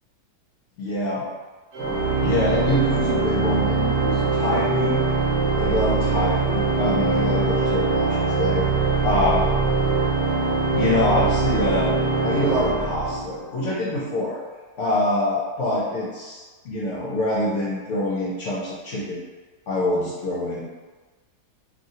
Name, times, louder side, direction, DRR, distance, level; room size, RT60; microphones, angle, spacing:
voice 1, 0.8-1.2 2.2-5.0 5.6-8.7 9.0-9.5 10.7-11.9 12.2-14.4 14.8-19.2 19.7-20.7, left 1 dB, 70° left, -6 dB, 0.7 m, -25 dB
Organ, 1.7-13.6, right 4 dB, 80° right, 1.2 m, -22 dB
2.9 x 2.4 x 2.7 m, 1.3 s
omnidirectional pair, 1.7 m